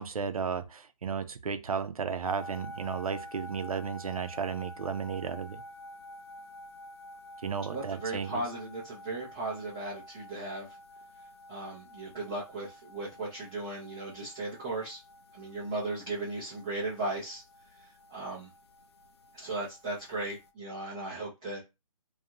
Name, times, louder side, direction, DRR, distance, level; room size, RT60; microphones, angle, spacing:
voice 1, 0.0-5.6 7.4-8.4, right 6 dB, 80° right, 0.6 m, -34 dB
sound 1, 2.2-20.5, left 1 dB, 45° left, 0.5 m, -49 dB
voice 2, 7.7-10.7 11.5-15.0 15.3-17.4 18.1-18.5 19.3-21.6, right 2 dB, 10° right, 0.4 m, -36 dB
2.5 x 2.3 x 2.9 m
hypercardioid pair, 160°, 18 cm